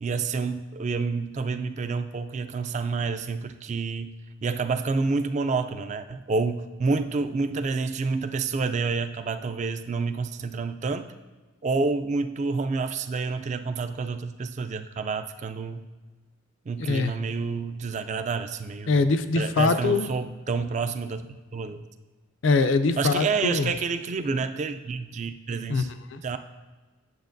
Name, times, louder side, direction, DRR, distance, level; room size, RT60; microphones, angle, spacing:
voice 1, 0.0-4.1 4.4-11.1 11.6-15.9 16.7-19.0 19.4-21.8 23.0-25.9 26.2-26.4, right 4 dB, 35° right, 9 dB, 0.3 m, -28 dB
voice 2, 16.9-17.2 18.9-20.1 22.4-23.7 25.7-26.2, left 3 dB, 65° left, 11 dB, 0.4 m, -23 dB
9.2 x 7.3 x 2.6 m, 1.3 s
head